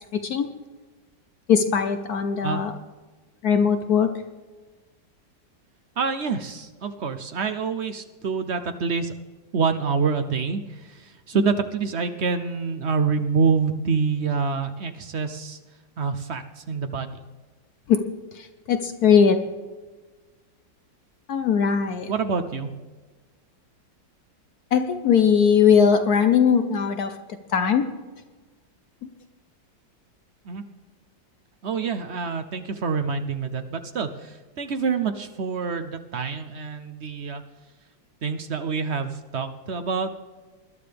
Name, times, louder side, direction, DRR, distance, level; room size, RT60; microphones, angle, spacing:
voice 1, 1.5-2.7 3.4-4.1 17.9-18.0 18.3-19.4 21.3-22.1 24.7-27.1 27.5-27.8, left 7 dB, 65° left, 8 dB, 1.1 m, -19 dB
voice 2, 6.0-9.1 9.5-15.6 16.0-17.1 22.1-22.7 30.5-30.6 31.6-37.4 38.2-40.1, right 5 dB, 60° right, 7 dB, 0.7 m, -26 dB
20.5 x 11.5 x 3.4 m, 1.3 s
omnidirectional pair, 2.0 m